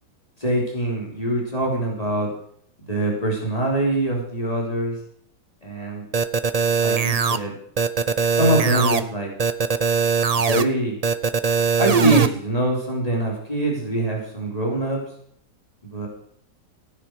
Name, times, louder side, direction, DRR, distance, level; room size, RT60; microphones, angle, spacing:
voice 1, 0.4-2.3 2.9-5.0 5.6-6.0 6.8-7.6 8.3-9.3 10.4-11.0 11.8-15.0 15.8-16.1, right 1 dB, 20° left, -2 dB, 3.9 m, -24 dB
sound 1, 6.1-7.4 7.8-9.0 9.4-10.6 11.0-12.3, right 5 dB, 55° right, 0.4 m, -20 dB
17.5 x 10.0 x 4.8 m, 0.67 s
omnidirectional pair, 1.8 m